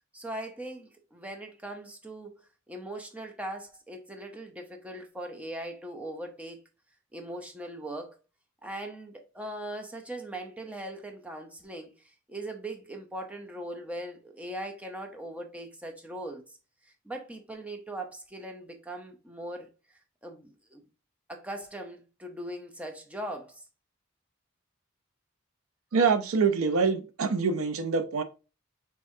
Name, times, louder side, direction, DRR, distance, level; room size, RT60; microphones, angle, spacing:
voice 1, 0.1-6.6 7.1-8.2 8.6-16.4 17.0-19.7 20.2-20.8 21.3-23.6, right 1 dB, 5° right, 0.7 m, -40 dB
voice 2, 25.9-28.2, right 5 dB, 85° right, 0.5 m, -25 dB
5.3 x 3.7 x 2.6 m
head